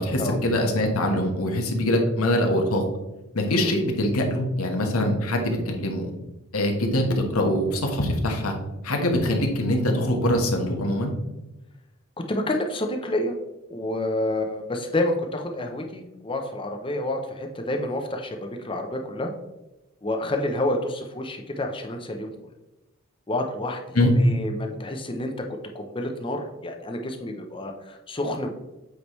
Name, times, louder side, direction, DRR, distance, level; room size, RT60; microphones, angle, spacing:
voice 1, 0.0-2.8 3.3-6.1 6.5-8.6 8.8-11.1 23.9-24.1, left 1 dB, 90° left, 2 dB, 1.3 m, -23 dB
voice 2, 12.3-13.3 13.7-19.3 20.0-22.3 23.3-23.8 24.2-25.3 25.7-28.5, left 1 dB, 25° left, 3 dB, 0.7 m, -29 dB
8.1 x 5.0 x 3.1 m, 0.98 s
head